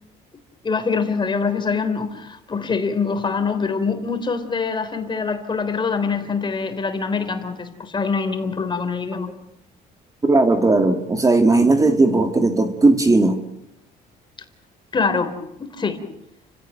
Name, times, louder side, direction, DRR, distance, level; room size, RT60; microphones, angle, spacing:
voice 1, 0.6-9.3 14.9-15.3 15.6-16.0, left 5 dB, 25° left, 3.6 m, -24 dB
voice 2, 10.2-13.4, right 2 dB, 20° right, 2.3 m, -17 dB
30.0 x 16.5 x 9.2 m
cardioid pair, 110°, 17 cm